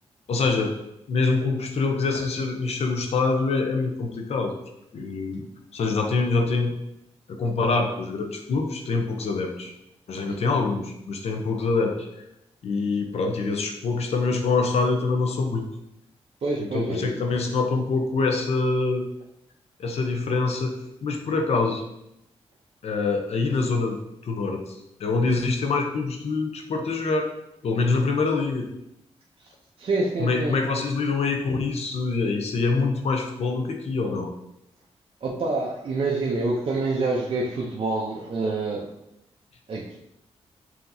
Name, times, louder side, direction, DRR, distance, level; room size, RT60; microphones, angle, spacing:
voice 1, 0.3-0.7 1.1-4.5 4.9-5.4 5.7-6.7 7.3-9.7 10.1-12.1 12.6-15.6 16.7-19.1 19.8-20.7 21.0-21.8 22.8-27.3 27.6-28.7 30.2-34.3, left 3 dB, 70° left, 3 dB, 0.7 m, -25 dB
voice 2, 16.4-17.1 29.4-29.5 29.8-30.8 35.2-39.0 39.7-40.0, right 3 dB, 55° right, -3 dB, 0.6 m, -27 dB
5.7 x 2.8 x 2.7 m, 0.83 s
cardioid pair, 75°, 11 cm